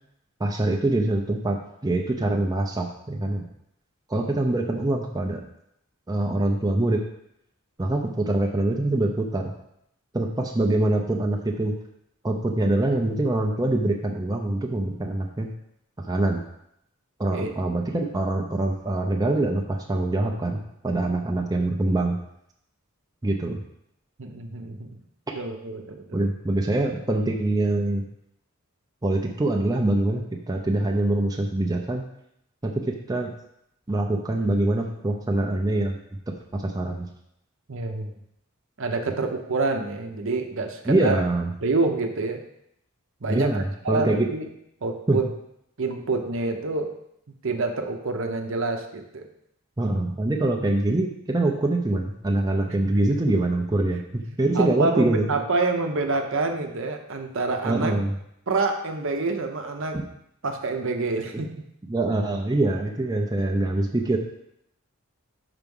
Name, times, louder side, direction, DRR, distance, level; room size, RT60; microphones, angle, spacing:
voice 1, 0.4-1.6 1.8-3.4 4.1-5.4 6.1-7.0 7.8-9.5 10.1-11.7 12.2-15.5 16.0-16.4 17.2-22.2 23.2-23.6 26.1-28.0 29.0-32.0 32.6-33.3 33.9-36.0 36.5-37.1 40.9-41.5 43.3-44.3 45.1-45.2 49.8-55.3 57.6-58.1 59.9-60.0 61.9-64.2, right 2 dB, 15° right, 1 dB, 0.5 m, -24 dB
voice 2, 24.2-25.0 25.3-26.2 37.7-38.1 38.8-41.2 41.6-42.4 43.2-44.5 44.8-45.3 45.8-46.9 47.4-49.3 52.7-53.2 53.9-54.0 54.5-58.0 58.5-60.0 60.4-61.5, right 3 dB, 60° right, 5 dB, 0.8 m, -27 dB
5.9 x 4.6 x 5.4 m, 0.76 s
head